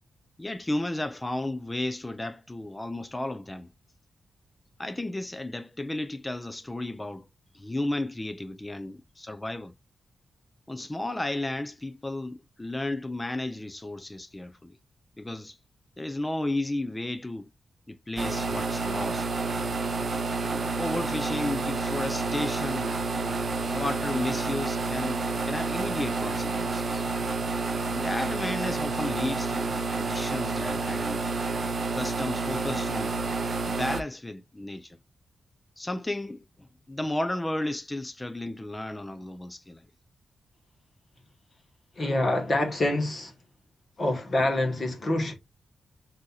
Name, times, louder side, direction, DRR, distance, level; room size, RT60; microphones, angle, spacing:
voice 1, 0.4-3.7 4.8-7.3 7.5-9.7 10.7-14.8 15.2-15.6 16.0-17.5 17.9-19.3 20.3-27.1 27.9-31.2 31.9-33.2 33.7-35.0 35.8-39.9, left 1 dB, 15° left, 0.4 m, -33 dB
sound 1, 18.2-34.0, right 3 dB, 40° right, 0.5 m, -29 dB
voice 2, 42.0-43.3 44.0-45.3, left 1 dB, 40° left, 1.2 m, -26 dB
7.4 x 2.7 x 2.3 m
wide cardioid pair, 140°, 0 cm